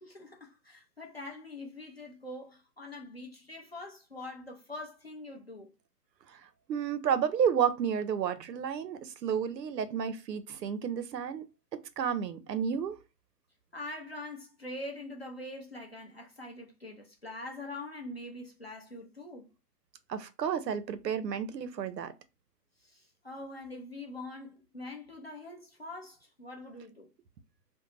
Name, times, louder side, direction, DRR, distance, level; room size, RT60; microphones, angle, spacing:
voice 1, 0.0-5.7 13.7-19.5 22.8-27.1, left 2 dB, 40° left, 0.5 m, -44 dB
voice 2, 6.7-13.0 20.1-22.1, right 8 dB, 90° right, 0.6 m, -31 dB
2.6 x 2.0 x 3.1 m
hypercardioid pair, 180°, 49 cm